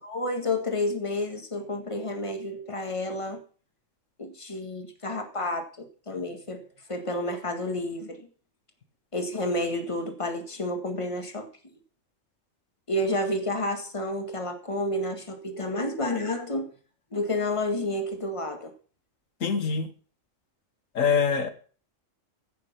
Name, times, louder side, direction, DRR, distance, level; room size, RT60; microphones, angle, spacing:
voice 1, 0.0-3.4 4.2-8.3 9.1-11.5 12.9-16.7 17.1-18.7, left 1 dB, 25° left, 1.9 m, -30 dB
voice 2, 19.4-19.9 21.0-21.5, left 6 dB, 80° left, 1.8 m, -24 dB
15.5 x 6.6 x 5.9 m
omnidirectional pair, 1.3 m